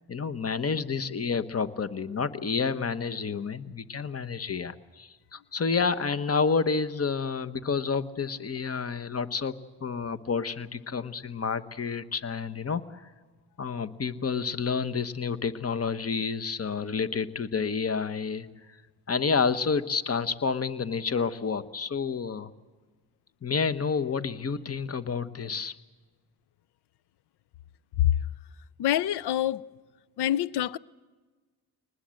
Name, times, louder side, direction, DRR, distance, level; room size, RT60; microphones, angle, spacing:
voice 1, 0.1-9.5 9.8-13.1 13.6-18.8 19.1-22.5 23.4-25.7, left 5 dB, 35° left, 1.2 m, -29 dB
voice 2, 28.8-29.7 30.2-30.8, left 12 dB, 75° left, 0.6 m, -25 dB
23.0 x 20.0 x 7.7 m
supercardioid pair, 45°, 40 cm